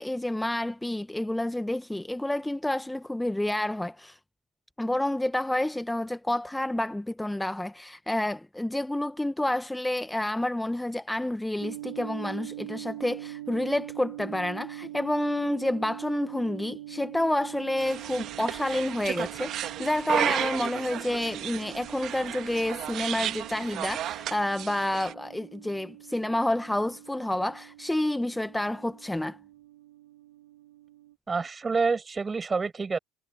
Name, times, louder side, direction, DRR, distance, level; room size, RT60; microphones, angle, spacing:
voice 1, 0.0-4.2 4.8-29.4, left 1 dB, 5° left, 1.2 m, -29 dB
sound 1, 11.6-31.1, right 15 dB, 75° right, 3.7 m, -44 dB
sound 2, 17.8-25.1, right 12 dB, 50° right, 1.6 m, -33 dB
voice 2, 31.3-33.0, right 4 dB, 25° right, 7.3 m, -27 dB
figure-of-eight pair, 65°, 0 cm